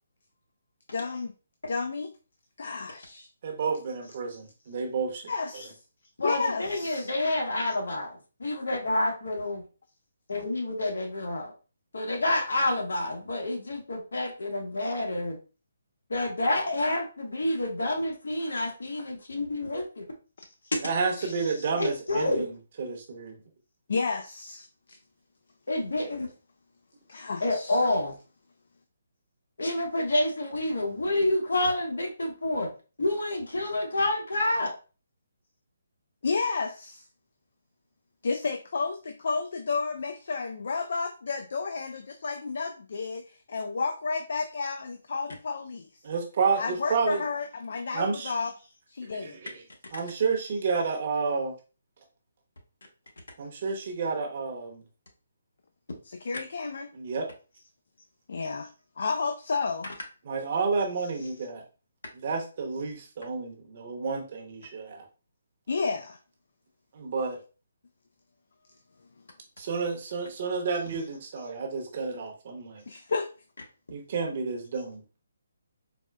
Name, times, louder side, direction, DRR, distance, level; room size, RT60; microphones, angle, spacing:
voice 1, 0.9-1.3 1.7-2.1 2.6-3.3 5.3-5.8 6.2-7.1 21.2-21.7 23.9-25.0 27.1-27.8 36.2-37.0 38.2-45.9 46.6-49.4 56.0-56.9 58.3-58.7 59.0-59.9 61.2-61.3 65.7-66.2 72.9-73.3, left 4 dB, 60° left, 6 dB, 0.3 m, -31 dB
voice 2, 3.4-5.6 20.8-22.5 22.8-23.4 46.0-47.2 47.9-48.3 49.2-49.6 49.9-51.5 53.4-54.8 56.6-57.3 60.3-61.6 62.1-65.0 66.9-67.4 69.6-72.8 73.9-75.0, right 4 dB, 40° right, 2 dB, 0.8 m, -30 dB
voice 3, 6.2-9.6 10.3-11.5 11.9-15.4 16.1-20.0 21.7-22.5 25.7-26.3 27.4-28.2 29.6-32.7 33.0-34.7, left 1 dB, 80° left, 2 dB, 1.0 m, -28 dB
4.2 x 2.1 x 2.2 m, 0.34 s
hypercardioid pair, 165°, 0 cm